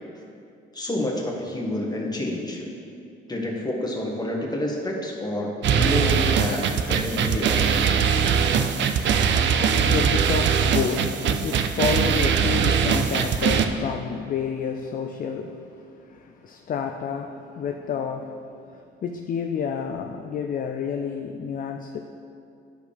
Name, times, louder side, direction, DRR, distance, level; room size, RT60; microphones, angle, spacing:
voice 1, 0.7-2.6 3.3-8.2, left 1 dB, 20° left, -1 dB, 1.4 m, -29 dB
sound 1, 5.6-13.7, right 7 dB, 65° right, 0.5 m, -21 dB
voice 2, 9.3-22.0, left 6 dB, 45° left, 4 dB, 0.4 m, -30 dB
11.5 x 4.9 x 3.4 m, 2.6 s
cardioid pair, 90°, 20 cm